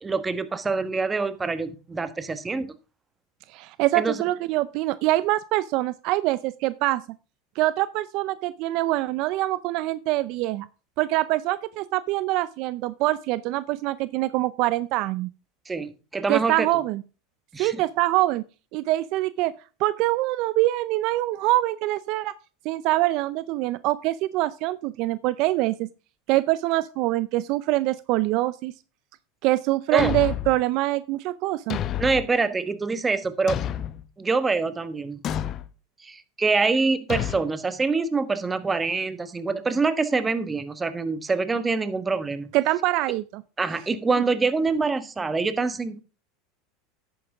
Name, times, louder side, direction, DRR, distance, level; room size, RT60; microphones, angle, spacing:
voice 1, 0.0-2.7 3.9-4.2 15.7-16.7 17.5-17.8 29.9-30.1 32.0-33.6 34.2-35.2 36.0-42.5 43.6-46.0, right 4 dB, 15° right, 12 dB, 1.3 m, -25 dB
voice 2, 3.5-7.0 7.6-10.7 11.0-15.3 16.3-17.0 17.6-18.4 18.7-19.5 19.8-22.3 22.6-25.9 26.3-28.7 29.4-31.8 42.5-43.4, right 17 dB, 60° right, 16 dB, 0.5 m, -24 dB
Thump thud, 30.0-30.6 31.7-32.3 33.5-34.0 35.2-35.7 37.1-37.4, left 10 dB, 40° left, 0.9 m, -29 dB
11.0 x 9.1 x 3.5 m, 0.33 s
supercardioid pair, 105°, 0 cm